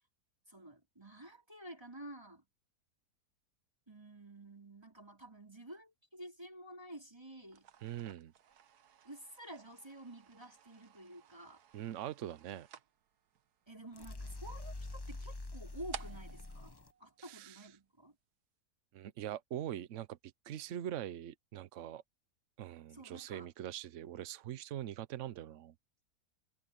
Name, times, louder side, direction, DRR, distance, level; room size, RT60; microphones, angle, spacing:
voice 1, 0.5-2.4 3.9-7.7 9.0-11.6 13.7-16.7 17.0-18.2 22.9-23.5, right 1 dB, 15° right, 4.3 m, -51 dB
sound 1, 7.4-17.8, right 8 dB, 85° right, 1.5 m, -55 dB
voice 2, 7.8-8.3 11.7-12.7 17.2-17.7 18.9-22.0 22.6-25.7, right 11 dB, 60° right, 1.0 m, -43 dB
sound 2, 13.9-16.9, left 2 dB, 20° left, 0.9 m, -45 dB
omnidirectional pair, 1.6 m